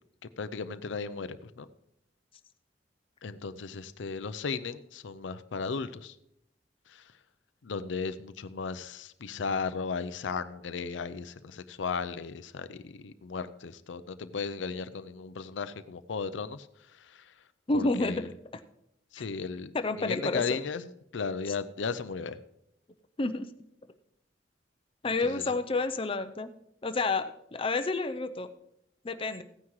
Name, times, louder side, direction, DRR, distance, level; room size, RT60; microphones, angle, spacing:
voice 1, 0.4-1.7 3.2-6.1 7.6-16.7 17.7-18.2 19.1-19.7 20.0-20.8 21.1-22.4 25.3-25.4, left 5 dB, 90° left, 13 dB, 0.5 m, -35 dB
voice 2, 17.7-18.2 19.2-19.3 19.7-20.6 21.5-21.6 23.2-23.5 25.0-26.5 26.8-28.5 29.0-29.4, left 3 dB, 30° left, 8 dB, 0.6 m, -29 dB
15.5 x 9.5 x 3.1 m, 0.77 s
head